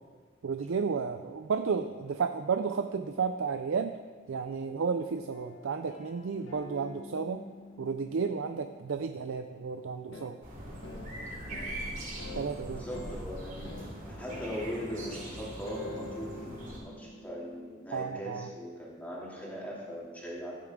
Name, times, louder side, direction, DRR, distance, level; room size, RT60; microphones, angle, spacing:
voice 1, 0.4-4.0 4.3-7.4 7.8-10.4 12.3-12.8 17.9-18.5, right 5 dB, 70° right, 8 dB, 0.4 m, -32 dB
sound 1, 5.3-9.3 10.1-10.3 10.8-11.1 11.5-11.8 12.2-12.5 12.9-13.2 13.6-13.9 14.3-14.6 15.0-15.3 15.7-18.1, left 2 dB, 60° left, 1.2 m, -47 dB
sound 2, 10.4-16.8, right 1 dB, 40° right, 3.5 m, -41 dB
voice 2, 12.7-13.7 14.1-20.6, equal, 10° left, -5 dB, 2.6 m, -40 dB
15.5 x 9.4 x 3.7 m, 1.5 s
head